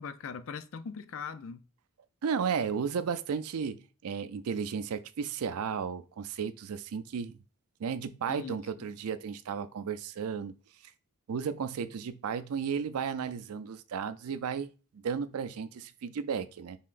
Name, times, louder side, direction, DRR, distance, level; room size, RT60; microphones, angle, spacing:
voice 1, 0.0-1.6 8.3-8.9, left 6 dB, 60° left, 0.5 m, -41 dB
voice 2, 2.2-7.4 7.8-10.5 11.3-14.7 14.9-16.8, right 6 dB, 75° right, 0.4 m, -34 dB
5.6 x 3.7 x 2.5 m
head